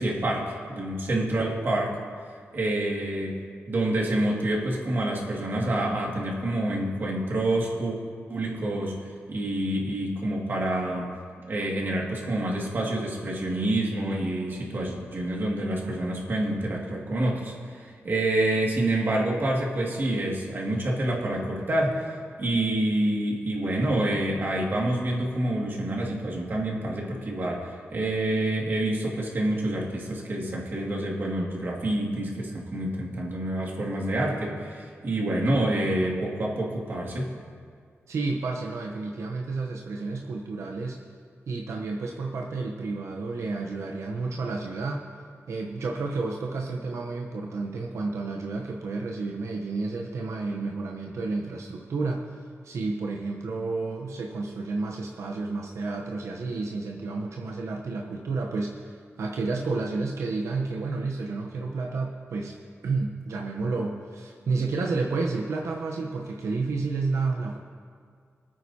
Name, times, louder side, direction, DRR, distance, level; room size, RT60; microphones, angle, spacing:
voice 1, 0.0-1.9 2.5-3.4 3.7-8.0 8.3-9.0 9.3-11.1 11.5-22.1 22.4-37.3, right 1 dB, 45° right, -3 dB, 2.1 m, -27 dB
voice 2, 38.1-41.0 41.5-45.0 45.5-52.2 52.6-62.6 62.8-67.6, right 3 dB, 90° right, 0 dB, 0.9 m, -31 dB
23.5 x 9.1 x 2.8 m, 2.1 s
wide cardioid pair, 150°, 5 cm